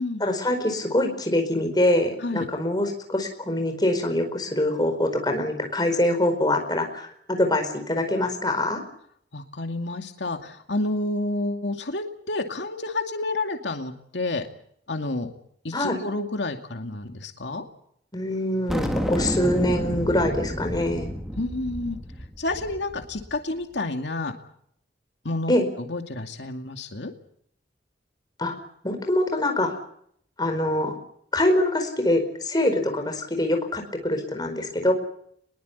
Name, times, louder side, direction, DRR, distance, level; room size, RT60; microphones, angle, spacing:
voice 1, 0.2-7.1 7.4-8.8 15.7-16.0 18.1-21.1 25.5-25.7 28.4-28.5 28.8-29.8 30.4-30.9 31.3-34.9, left 1 dB, 25° left, 5 dB, 4.7 m, -24 dB
voice 2, 9.3-14.5 14.9-15.3 15.6-17.6 21.4-22.0 22.4-24.3 25.2-27.1 32.7-32.8, left 2 dB, 85° left, 5 dB, 2.4 m, -30 dB
sound 1, 18.7-23.4, equal, ahead, 2.5 m, -30 dB
22.5 x 22.0 x 8.3 m, 0.69 s
head